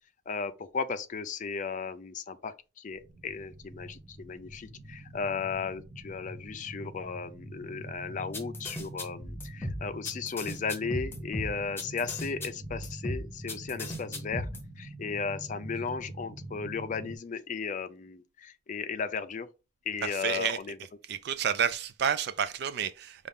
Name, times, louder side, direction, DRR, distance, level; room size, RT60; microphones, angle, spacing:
voice 1, 0.3-14.5 14.8-19.5 19.9-20.8, left 5 dB, 45° left, 0.4 m, -35 dB
sound 1, 2.9-17.2, right 1 dB, 45° right, 1.1 m, -44 dB
sound 2, 8.3-14.6, left 1 dB, 15° left, 0.8 m, -36 dB
voice 2, 20.0-20.6 21.1-23.3, right 8 dB, 60° right, 0.3 m, -30 dB
5.4 x 2.4 x 3.5 m
head